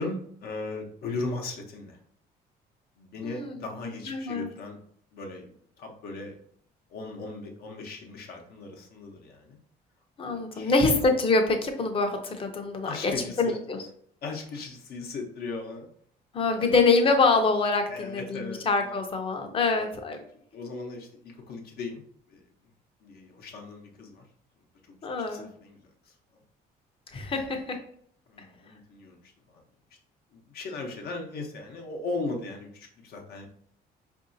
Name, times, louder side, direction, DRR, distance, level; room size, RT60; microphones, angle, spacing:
voice 1, 0.0-2.0 3.0-4.8 5.1-6.4 6.9-9.6 10.2-11.0 12.8-13.6 14.2-15.9 16.5-16.8 17.9-19.0 19.6-19.9 20.5-22.0 22.3-22.4 23.0-24.3 24.9-25.0 25.3-26.4 28.3-29.2 29.5-29.6 30.3-33.5, left 3 dB, 65° left, 2 dB, 0.9 m, -38 dB
voice 2, 3.2-3.5 4.1-4.5 10.2-13.1 13.4-13.8 16.3-20.2 25.0-25.5 27.1-27.8, left 3 dB, 30° left, 4 dB, 0.7 m, -25 dB
4.7 x 2.7 x 2.6 m, 0.63 s
cardioid pair, 110°, 17 cm